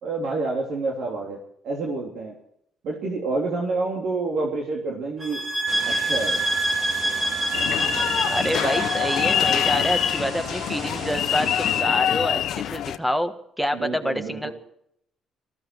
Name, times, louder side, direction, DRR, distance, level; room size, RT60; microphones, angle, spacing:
voice 1, 0.0-1.4 1.6-2.3 2.8-5.4 5.8-6.4 13.7-14.5, right 3 dB, 65° right, -1 dB, 3.3 m, -28 dB
sound 1, 5.2-10.3, right 2 dB, 30° right, 5.2 m, -26 dB
sound 2, 5.7-11.8, right 4 dB, 45° right, 2.2 m, -37 dB
sound 3, 7.5-13.0, left 11 dB, 65° left, 0.8 m, -25 dB
voice 2, 8.3-14.5, equal, ahead, 10 dB, 1.5 m, -27 dB
19.0 x 14.5 x 4.7 m, 0.72 s
cardioid pair, 120°, 0 cm